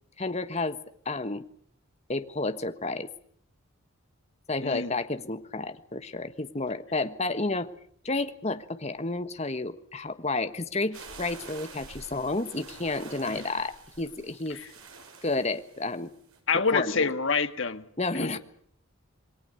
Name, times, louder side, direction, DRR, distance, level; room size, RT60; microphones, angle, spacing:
voice 1, 0.2-0.8 1.0-1.4 2.1-3.1 4.5-7.7 8.0-14.6 15.2-16.1 16.7-17.1 18.0-18.4, left 2 dB, 30° left, 10 dB, 1.4 m, -31 dB
sound 1, 10.9-16.4, right 4 dB, 80° right, 6.4 m, -47 dB
voice 2, 16.5-17.8 18.2-18.4, left 5 dB, 60° left, 9 dB, 1.8 m, -26 dB
27.5 x 21.5 x 6.7 m, 0.63 s
head